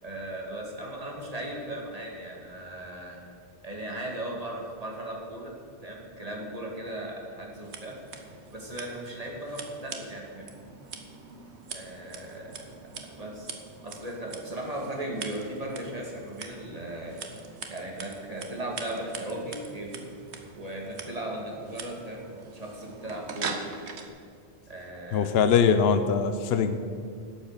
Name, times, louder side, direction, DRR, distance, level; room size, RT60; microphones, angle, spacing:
voice 1, 0.0-3.2 3.6-5.5 5.8-8.0 8.5-10.6 11.7-13.6 13.8-17.2 17.7-20.1 20.6-23.6 24.7-25.3, right 1 dB, 35° right, -1 dB, 2.0 m, -37 dB
Scissors, 7.5-24.1, right 5 dB, 85° right, 1.3 m, -43 dB
voice 2, 25.1-26.7, left 6 dB, 70° left, 9 dB, 0.8 m, -22 dB
12.0 x 8.1 x 6.6 m, 2.2 s
omnidirectional pair, 1.1 m